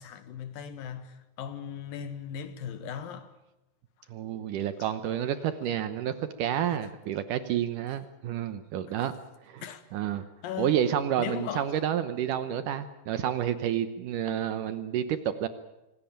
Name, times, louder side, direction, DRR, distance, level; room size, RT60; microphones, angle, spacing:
voice 1, 0.0-3.3 4.8-4.9 6.6-6.9 8.9-9.0 9.6-9.8 10.4-10.8 11.2-11.7, left 8 dB, 80° left, 3.4 m, -38 dB
voice 2, 4.1-9.1 9.4-9.6 9.9-10.2 10.6-15.5, right 10 dB, 70° right, 2.4 m, -29 dB
26.0 x 17.5 x 8.8 m
omnidirectional pair, 4.0 m